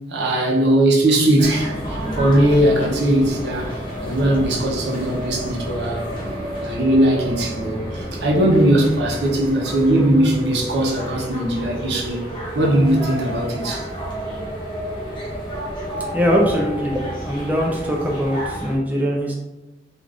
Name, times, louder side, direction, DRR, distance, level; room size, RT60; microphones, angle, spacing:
voice 1, 0.1-3.7 4.0-6.1 6.6-12.2 12.5-13.8, right 1 dB, 70° right, -2 dB, 0.6 m, -19 dB
sound 1, 1.4-18.8, equal, 25° left, 0.7 m, -30 dB
voice 2, 16.1-19.3, equal, 10° right, -2 dB, 0.3 m, -21 dB
2.4 x 2.3 x 3.3 m, 1.0 s
head